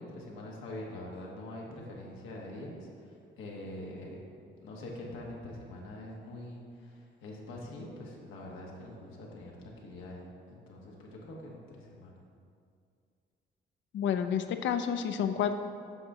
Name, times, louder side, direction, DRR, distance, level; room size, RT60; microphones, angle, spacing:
voice 1, 0.0-4.2 4.6-12.2, left 1 dB, 90° left, -2 dB, 1.4 m, -44 dB
voice 2, 13.9-15.5, left 8 dB, 70° left, 8 dB, 0.6 m, -29 dB
7.8 x 6.0 x 3.8 m, 2.3 s
cardioid pair, 90°, 20 cm